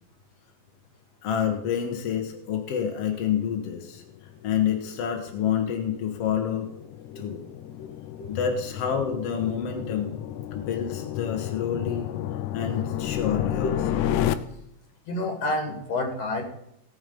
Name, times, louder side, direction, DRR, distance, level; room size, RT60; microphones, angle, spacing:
voice 1, 1.2-4.0 4.4-6.7 7.1-7.5 8.3-10.2 10.5-12.1 12.5-13.7, left 8 dB, 60° left, 3 dB, 1.6 m, -28 dB
sound 1, 3.4-14.4, left 12 dB, 90° left, 1.8 m, -32 dB
voice 2, 15.1-16.4, left 2 dB, 45° left, 2 dB, 3.4 m, -29 dB
18.0 x 8.1 x 5.2 m, 0.76 s
omnidirectional pair, 4.3 m